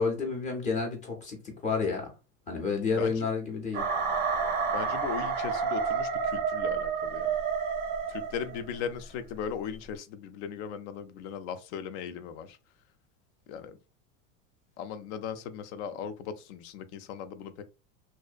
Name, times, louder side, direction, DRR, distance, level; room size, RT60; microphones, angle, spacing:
voice 1, 0.0-2.1 2.5-3.8, left 4 dB, 20° left, 0.6 m, -30 dB
voice 2, 2.9-3.3 4.7-7.3 8.1-12.6 13.5-13.8 14.8-17.6, left 7 dB, 65° left, 0.5 m, -38 dB
sound 1, 3.7-8.7, right 5 dB, 25° right, 0.5 m, -30 dB
2.6 x 2.0 x 2.3 m
supercardioid pair, 155°, 38 cm